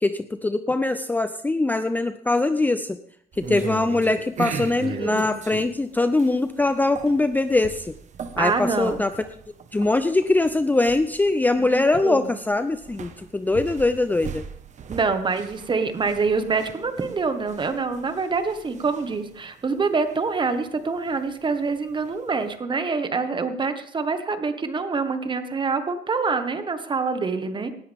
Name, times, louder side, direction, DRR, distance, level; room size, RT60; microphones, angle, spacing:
voice 1, 0.0-3.0 3.4-7.9 8.4-9.1 9.7-14.4, left 2 dB, 10° left, 10 dB, 0.5 m, -22 dB
sound 1, 3.3-22.5, right 6 dB, 45° right, 1.3 m, -39 dB
voice 2, 4.6-5.4 8.4-9.0 11.6-12.4 14.9-27.7, right 4 dB, 30° right, 9 dB, 1.5 m, -26 dB
18.5 x 13.0 x 3.6 m, 0.65 s
cardioid pair, 110°, 17 cm